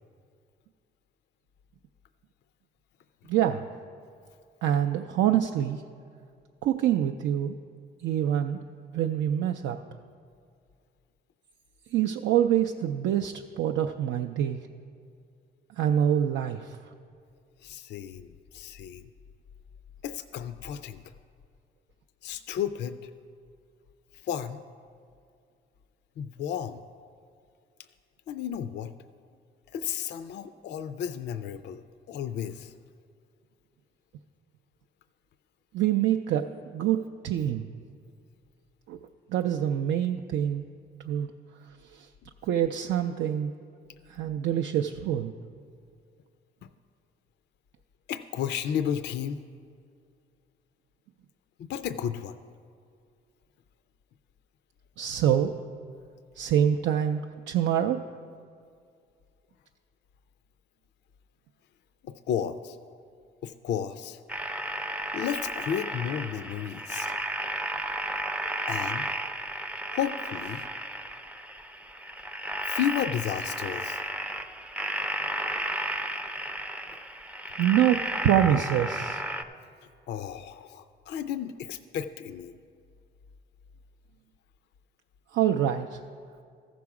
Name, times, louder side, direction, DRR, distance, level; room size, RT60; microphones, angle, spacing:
voice 1, 3.3-3.7 4.6-5.8 6.6-7.5 8.0-8.6 8.9-9.8 11.9-14.6 15.8-16.8 35.7-37.7 38.9-39.0 39.3-40.6 41.0-41.3 41.9-42.1 42.4-43.5 44.1-45.3 55.0-55.5 56.4-58.0 77.6-79.2 85.3-86.0, right 10 dB, 75° right, 4 dB, 0.4 m, -25 dB
voice 2, 17.6-19.1 20.0-21.0 22.2-23.1 24.2-24.6 26.2-26.8 28.3-28.9 29.7-32.7 48.1-49.4 51.6-52.4 62.0-62.8 63.4-64.2 65.1-67.1 68.7-69.1 69.9-70.7 72.7-74.0 80.1-82.5, left 9 dB, 60° left, 11 dB, 0.4 m, -33 dB
sound 1, 64.3-79.4, right 1 dB, 5° right, 0.4 m, -33 dB
14.0 x 6.1 x 4.7 m, 2.3 s
cardioid pair, 90°, 20 cm